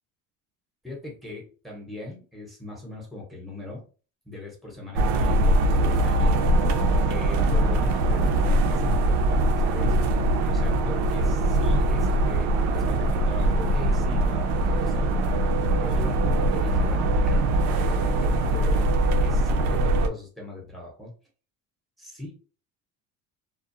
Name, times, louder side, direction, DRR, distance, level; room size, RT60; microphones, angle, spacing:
voice 1, 0.8-3.9 4.2-6.5 7.1-8.4 8.7-9.2 9.6-10.0 10.5-15.1 15.8-18.8 19.2-21.1 22.0-22.3, left 2 dB, ahead, -1 dB, 0.8 m, -39 dB
sound 1, 5.0-20.1, right 1 dB, 90° right, 0.5 m, -22 dB
2.3 x 2.0 x 2.6 m, 0.37 s
cardioid pair, 135°, 33 cm